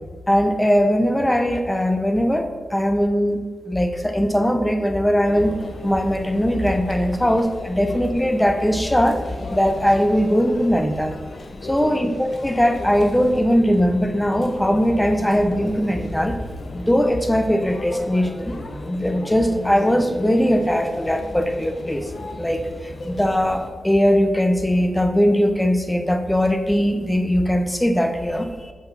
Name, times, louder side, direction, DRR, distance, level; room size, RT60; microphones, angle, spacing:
voice 1, 0.3-3.4 3.7-5.5 5.8-9.2 9.5-11.2 11.6-16.4 16.7-18.6 18.8-22.1 22.4-28.7, equal, 10° left, 6 dB, 0.9 m, -20 dB
Conversation / Chatter / Crowd, 5.3-23.7, left 2 dB, 50° left, 0.9 m, -36 dB
7.9 x 5.3 x 5.5 m, 1.4 s
cardioid pair, 75°, 0 cm